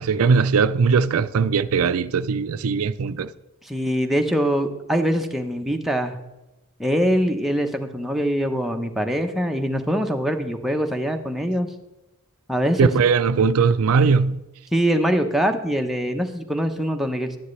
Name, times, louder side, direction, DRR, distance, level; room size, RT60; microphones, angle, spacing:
voice 1, 0.0-3.3 12.8-14.4, right 5 dB, 90° right, 0.4 m, -19 dB
voice 2, 3.6-6.2 6.8-11.7 12.5-12.9 14.7-17.4, equal, ahead, 0.8 m, -23 dB
11.5 x 10.0 x 3.2 m
head